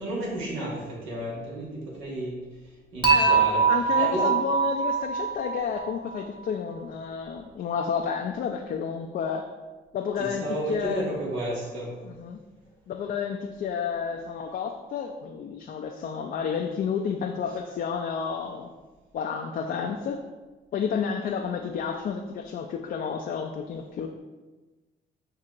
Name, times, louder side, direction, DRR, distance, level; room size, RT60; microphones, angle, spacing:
voice 1, 0.0-2.4 2.9-3.6 3.9-4.3 10.2-11.9, right 1 dB, 85° right, -4 dB, 1.4 m, -32 dB
Dishes pots and pans / Chink clink, 3.0-6.2, right 6 dB, 25° right, 1.0 m, -23 dB
voice 2, 3.1-9.5 9.9-11.0 12.0-12.4 12.9-18.7 19.1-20.2 20.7-24.1, left 6 dB, 50° left, 3 dB, 0.4 m, -31 dB
6.6 x 2.8 x 2.5 m, 1.2 s
cardioid pair, 90°, 20 cm